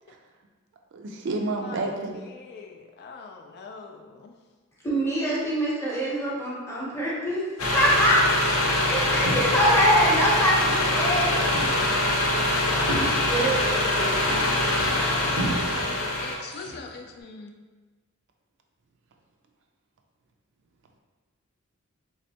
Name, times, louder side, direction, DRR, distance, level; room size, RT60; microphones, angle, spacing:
voice 1, 0.9-2.2, right 2 dB, 55° right, 2 dB, 0.4 m, -29 dB
voice 2, 1.6-4.3 14.2-17.5, left 4 dB, 50° left, 2 dB, 0.3 m, -42 dB
voice 3, 4.8-8.2 8.9-11.5 12.7-14.5, equal, 10° left, -5 dB, 0.8 m, -25 dB
sound 1, 7.6-16.4, left 1 dB, 75° left, 0.7 m, -24 dB
sound 2, 8.8-9.9 10.2-10.9 11.2-17.2, right 1 dB, 85° right, 0.7 m, -36 dB
3.4 x 3.2 x 2.8 m, 1.3 s
head